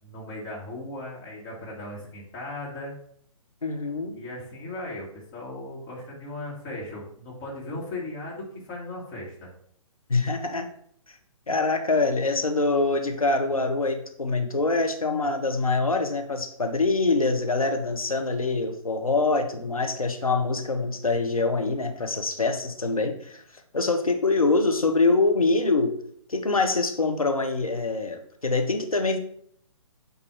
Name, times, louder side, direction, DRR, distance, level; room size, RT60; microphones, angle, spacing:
voice 1, 0.0-2.9 4.1-9.5, left 2 dB, 20° left, -5 dB, 1.7 m, -37 dB
voice 2, 3.6-4.2 10.1-10.7 11.5-23.4 23.7-25.9 26.3-29.2, left 3 dB, 85° left, 5 dB, 0.9 m, -24 dB
8.0 x 2.7 x 4.5 m, 0.66 s
figure-of-eight pair, 130°, 18 cm